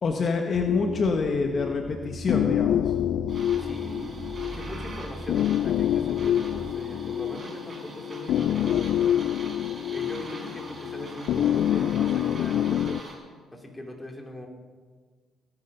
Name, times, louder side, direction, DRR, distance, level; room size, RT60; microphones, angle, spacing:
voice 1, 0.0-2.9, left 4 dB, 50° left, 3 dB, 1.2 m, -26 dB
sound 1, 0.5-6.7, right 1 dB, 10° right, 0.8 m, -41 dB
sound 2, 0.7-13.0, left 11 dB, 75° left, 0.3 m, -27 dB
sound 3, 3.3-13.2, right 2 dB, 40° right, 4.8 m, -43 dB
voice 2, 3.6-4.2 4.4-9.1 9.9-13.0 13.5-14.5, left 1 dB, 10° left, 1 dB, 3.0 m, -40 dB
18.0 x 10.0 x 5.5 m, 1.5 s
cardioid pair, 85°, 0 cm